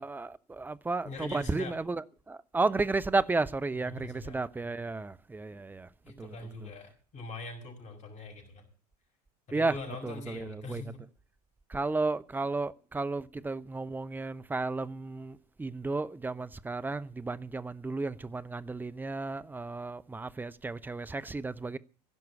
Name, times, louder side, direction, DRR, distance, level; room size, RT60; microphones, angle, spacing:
voice 1, 0.0-5.9 6.2-6.3 6.6-6.7 9.5-9.7 10.0-10.8 11.7-21.8, right 3 dB, 10° right, 0.6 m, -33 dB
voice 2, 1.0-1.8 3.9-4.7 6.1-8.6 9.5-11.0, left 3 dB, 35° left, 5.8 m, -43 dB
16.5 x 6.1 x 9.9 m
figure-of-eight pair, 85°, 21 cm